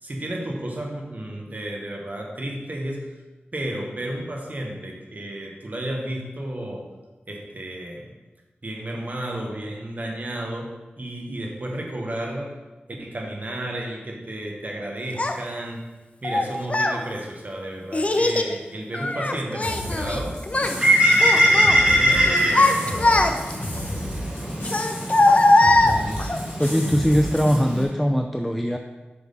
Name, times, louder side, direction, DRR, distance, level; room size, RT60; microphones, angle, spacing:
voice 1, 0.0-3.1 3.5-6.9 7.3-8.1 8.6-12.6 13.0-15.9 16.2-20.4 21.4-23.5 23.7-24.8, right 1 dB, 45° right, 0 dB, 1.5 m, -33 dB
Child speech kid speaking, 15.2-15.3 16.2-17.0 17.9-18.5 18.9-20.2 20.5-20.8 21.2-21.8 22.3-23.6 24.6-26.4, left 2 dB, 35° left, 0.6 m, -20 dB
sound 1, 19.6-27.6, equal, 75° left, 2.6 m, -34 dB
Bird, 20.5-27.8, equal, 25° right, 2.7 m, -22 dB
voice 2, 25.8-28.8, equal, ahead, 4 dB, 0.5 m, -22 dB
8.0 x 6.1 x 3.7 m, 1.1 s
wide cardioid pair, 65°, 4 cm